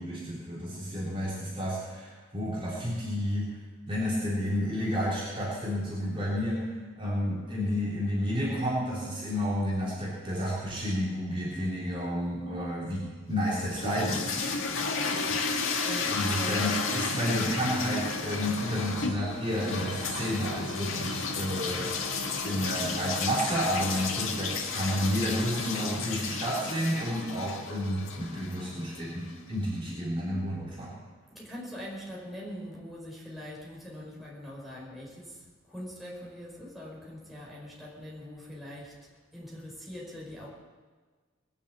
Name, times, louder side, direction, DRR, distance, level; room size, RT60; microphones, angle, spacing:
voice 1, 0.0-3.6 3.9-6.7 7.0-14.5 15.3-15.4 16.1-22.0 22.4-30.9, equal, 25° right, -7 dB, 3.6 m, -31 dB
sound 1, 13.4-29.4, left 4 dB, 75° left, 1.8 m, -33 dB
voice 2, 14.7-15.0 15.4-16.6 31.3-39.0 39.3-40.5, left 1 dB, ahead, -5 dB, 5.0 m, -42 dB
20.5 x 7.4 x 8.2 m, 1.4 s
head